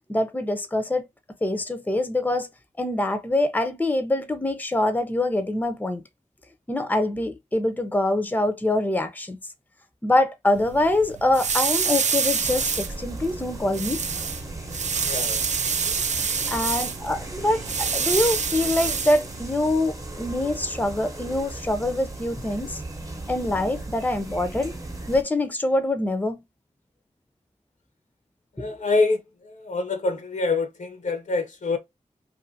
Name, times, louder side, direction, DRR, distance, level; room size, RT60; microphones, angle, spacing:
voice 1, 0.1-1.1 1.4-2.5 2.8-6.0 6.7-9.4 10.0-14.0 15.9-16.0 16.5-22.8 23.3-24.7 25.1-26.4, left 1 dB, 15° left, 0.6 m, -24 dB
sound 1, 10.5-19.8, right 6 dB, 65° right, 0.4 m, -27 dB
sound 2, 12.4-25.2, right 2 dB, 25° right, 0.8 m, -37 dB
voice 2, 15.0-15.5 28.5-31.8, left 3 dB, 70° left, 0.7 m, -26 dB
2.6 x 2.5 x 2.6 m
cardioid pair, 50°, 13 cm